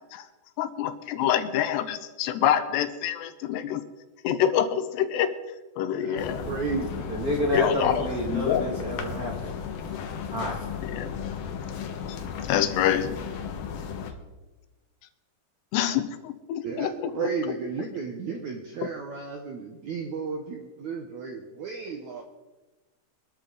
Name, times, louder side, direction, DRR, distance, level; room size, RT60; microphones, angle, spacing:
voice 1, 0.6-3.8 4.2-5.3 5.8-6.4 7.5-7.9 8.3-8.7 10.9-11.1 12.5-13.2 15.7-17.3, left 10 dB, 85° left, 11 dB, 3.1 m, -26 dB
voice 2, 6.0-7.1 16.6-22.2, right 5 dB, 70° right, 3 dB, 1.9 m, -33 dB
sound 1, 6.2-14.1, left 7 dB, 70° left, 2.8 m, -35 dB
voice 3, 7.1-9.6 9.9-10.0 10.2-10.7, equal, 25° right, -1 dB, 2.5 m, -29 dB
23.0 x 12.5 x 4.1 m, 1.1 s
omnidirectional pair, 4.8 m